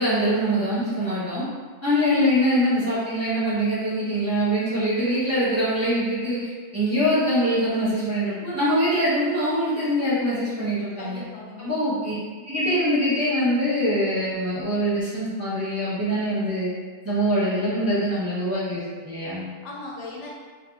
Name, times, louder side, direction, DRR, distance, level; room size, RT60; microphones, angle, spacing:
voice 1, 0.0-1.4 1.8-11.2 11.6-12.1 12.5-16.7 17.0-19.5, equal, 15° right, -11 dB, 0.6 m, -23 dB
voice 2, 11.0-11.9 19.6-20.3, left 2 dB, 90° left, -3 dB, 1.0 m, -38 dB
2.7 x 2.5 x 2.3 m, 1.5 s
omnidirectional pair, 1.2 m